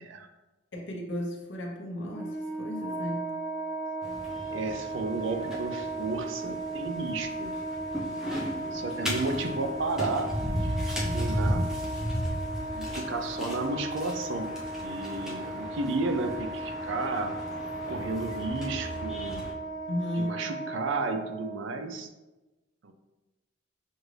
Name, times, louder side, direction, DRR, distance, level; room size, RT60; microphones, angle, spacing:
voice 1, 0.7-3.4 11.0-11.8 19.9-20.5, left 1 dB, 60° left, 0 dB, 0.8 m, -35 dB
Wind instrument woodwind instrument, 2.0-21.5, right 2 dB, 15° left, 1.0 m, -36 dB
sound 1, 4.0-19.5, equal, 5° right, 0.5 m, -36 dB
voice 2, 4.5-7.6 8.5-10.3 10.6-11.7 12.7-17.4 17.9-19.4 20.2-22.1 22.8-22.9, right 3 dB, 65° right, 7 dB, 0.4 m, -33 dB
6.2 x 2.5 x 3.2 m, 1.1 s
head